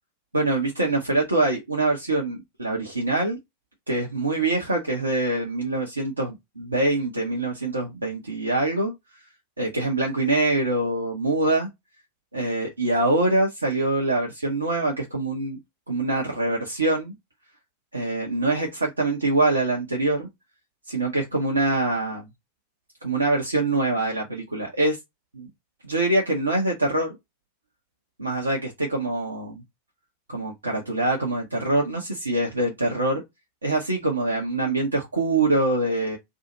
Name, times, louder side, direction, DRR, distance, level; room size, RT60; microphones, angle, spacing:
voice 1, 0.3-3.4 3.9-8.9 9.6-11.7 12.3-15.6 15.9-17.1 17.9-20.3 20.9-22.3 23.0-25.0 25.3-25.5 25.8-27.1 28.2-29.6 30.3-33.2 33.6-36.2, right 2 dB, 80° right, 0.8 m, -24 dB
2.8 x 2.6 x 3.8 m
figure-of-eight pair, 90°, 0 cm